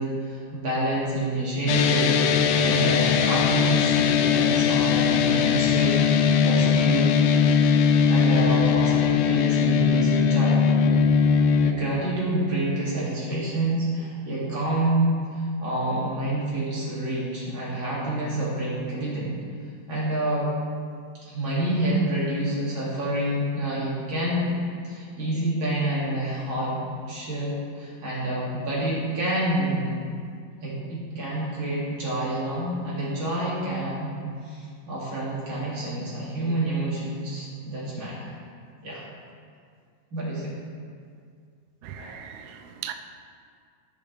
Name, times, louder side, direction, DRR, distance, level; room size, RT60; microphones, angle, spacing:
voice 1, 0.0-6.0 6.4-7.1 7.8-11.0 11.6-19.3 19.9-20.5 21.3-24.6 24.8-30.0 30.6-34.2 34.4-38.4 38.8-39.0 40.1-40.6 42.0-42.1, right 1 dB, 90° right, 3.5 m, -28 dB
sound 1, 1.7-11.7, left 6 dB, 75° left, 1.0 m, -20 dB
voice 2, 41.8-42.9, right 10 dB, 70° right, 0.9 m, -38 dB
14.5 x 6.0 x 3.4 m
omnidirectional pair, 2.1 m